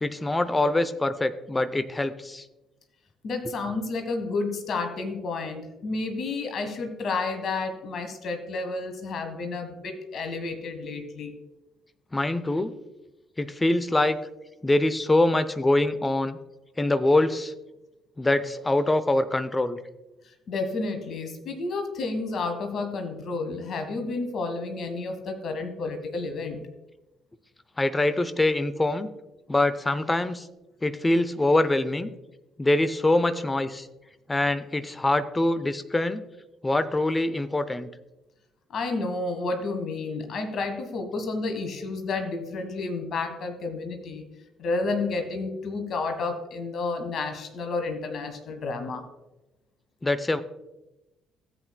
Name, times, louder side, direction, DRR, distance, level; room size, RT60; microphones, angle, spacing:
voice 1, 0.0-2.4 12.1-12.7 13.4-14.2 14.6-16.4 16.8-17.5 18.2-19.8 27.8-29.1 29.5-30.5 30.8-32.1 32.6-33.9 34.3-36.2 36.6-37.9 50.0-50.4, left 2 dB, 15° left, 13 dB, 0.7 m, -24 dB
voice 2, 3.2-11.3 20.5-26.6 38.7-44.2 44.6-49.0, left 3 dB, 50° left, 6 dB, 1.4 m, -31 dB
15.5 x 8.0 x 2.2 m, 1.0 s
figure-of-eight pair, 45°, 0 cm